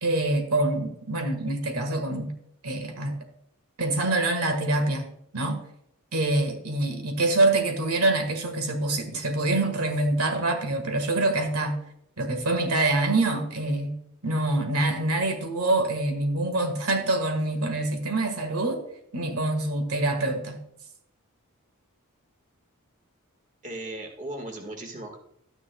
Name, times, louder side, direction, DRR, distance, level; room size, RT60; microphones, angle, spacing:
voice 1, 0.0-2.3 2.6-3.1 3.8-5.1 5.3-5.6 6.1-11.8 12.2-18.8 19.1-20.6, right 2 dB, 85° right, 1.6 m, -25 dB
voice 2, 23.6-25.2, right 1 dB, 35° right, 1.7 m, -37 dB
12.5 x 9.9 x 2.3 m
head